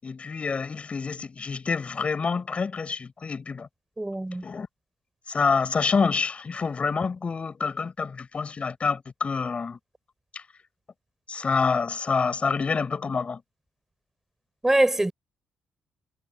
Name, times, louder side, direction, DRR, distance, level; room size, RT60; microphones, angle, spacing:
voice 1, 0.0-3.7 4.4-4.7 5.3-9.8 10.3-10.4 11.3-13.4, left 5 dB, 35° left, 7.9 m, -27 dB
voice 2, 4.0-4.4 14.6-15.1, right 1 dB, 10° right, 5.3 m, -23 dB
cardioid pair, 100°, 4 cm